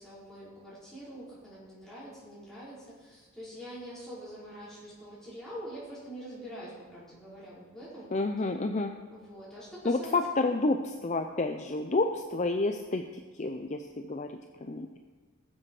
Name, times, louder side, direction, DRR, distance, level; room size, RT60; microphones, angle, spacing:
voice 1, 0.0-8.1 9.1-10.2, equal, ahead, -10 dB, 5.2 m, -45 dB
voice 2, 8.1-8.9 9.8-14.3 14.6-14.9, left 2 dB, 35° left, 5 dB, 0.5 m, -29 dB
20.0 x 7.6 x 4.9 m, 1.4 s
head